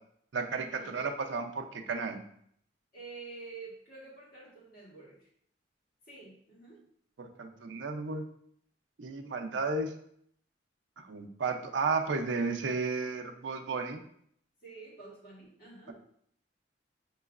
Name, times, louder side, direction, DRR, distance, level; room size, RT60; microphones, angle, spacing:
voice 1, 0.3-2.2 7.2-8.2 9.0-9.9 11.0-14.0, right 4 dB, 85° right, 4 dB, 0.5 m, -33 dB
voice 2, 2.9-5.3 6.1-6.8 14.6-15.9, right 4 dB, 55° left, -5 dB, 1.6 m, -48 dB
6.1 x 3.0 x 2.4 m, 0.67 s
head